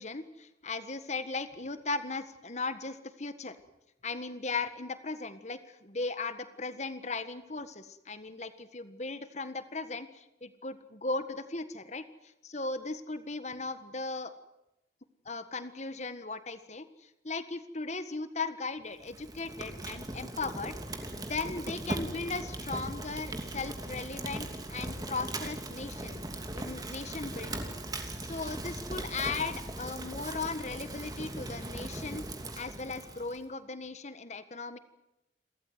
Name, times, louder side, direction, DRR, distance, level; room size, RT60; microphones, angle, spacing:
voice 1, 0.0-3.6 4.0-12.0 12.4-14.3 15.2-20.7 21.2-26.2 26.5-27.6 28.2-32.2 32.5-34.8, left 3 dB, 40° left, 11 dB, 1.6 m, -37 dB
Fire, 19.0-33.4, right 1 dB, 20° right, 2.8 m, -39 dB
28.5 x 14.5 x 9.6 m, 0.91 s
head